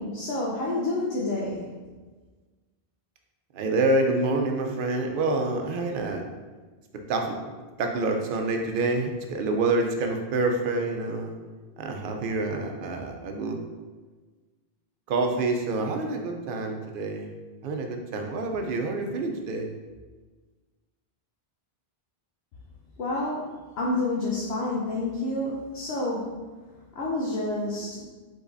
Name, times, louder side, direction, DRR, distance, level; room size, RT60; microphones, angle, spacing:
voice 1, 0.0-1.8 23.0-23.5 23.8-26.4 27.0-28.1, left 2 dB, 85° left, -4 dB, 1.0 m, -29 dB
voice 2, 3.5-6.2 7.1-7.4 7.8-11.3 11.8-13.6 15.1-17.3 17.6-19.7, right 2 dB, 65° right, 3 dB, 0.8 m, -27 dB
4.9 x 4.0 x 2.6 m, 1.3 s
omnidirectional pair, 1.0 m